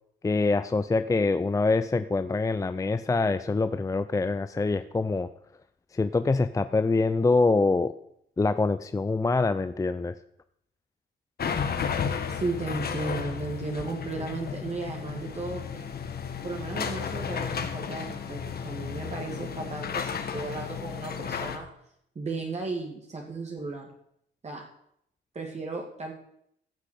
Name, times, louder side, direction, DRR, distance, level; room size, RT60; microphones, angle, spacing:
voice 1, 0.2-5.3 5.9-7.9 8.4-10.1, left 3 dB, 15° left, 11 dB, 0.5 m, -25 dB
sound 1, 11.4-21.6, left 7 dB, 50° left, 1.7 m, -33 dB
voice 2, 12.3-15.9 16.4-21.7 22.1-23.9 24.4-24.6 25.3-26.1, right 3 dB, 35° right, 0 dB, 2.4 m, -35 dB
15.0 x 6.1 x 8.5 m, 0.73 s
cardioid pair, 90°, 20 cm